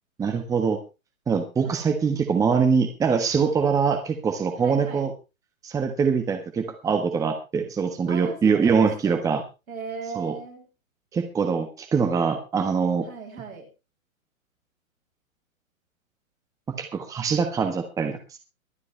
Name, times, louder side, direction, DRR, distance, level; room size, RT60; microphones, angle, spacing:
voice 1, 0.2-0.8 1.3-5.1 5.6-9.4 10.2-10.3 11.1-13.1 16.7-18.4, right 5 dB, 10° right, 6 dB, 1.2 m, -23 dB
voice 2, 4.6-5.0 8.1-9.2 9.7-10.7 13.0-13.7, right 5 dB, 80° right, -1 dB, 8.0 m, -37 dB
23.5 x 8.7 x 3.3 m, 0.29 s
hypercardioid pair, 145°, 41 cm